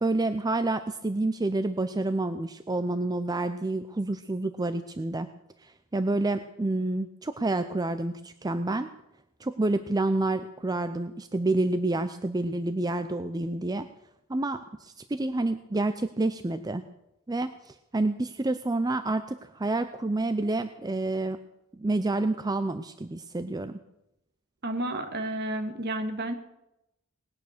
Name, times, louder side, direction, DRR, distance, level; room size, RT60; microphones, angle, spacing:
voice 1, 0.0-5.3 5.6-8.9 9.4-13.9 14.3-16.8 17.3-21.4 21.7-23.8, right 2 dB, 20° right, 10 dB, 0.5 m, -28 dB
voice 2, 24.6-26.3, right 1 dB, 50° right, 6 dB, 1.9 m, -31 dB
19.5 x 9.3 x 6.6 m, 0.88 s
head